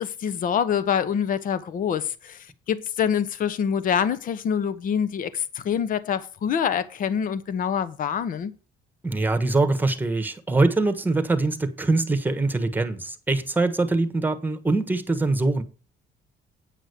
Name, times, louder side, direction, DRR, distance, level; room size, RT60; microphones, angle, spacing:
voice 1, 0.0-8.5, left 8 dB, 55° left, 0.9 m, -26 dB
voice 2, 9.0-15.6, right 2 dB, 10° right, 1.3 m, -23 dB
9.3 x 6.2 x 6.7 m
cardioid pair, 110°, 17 cm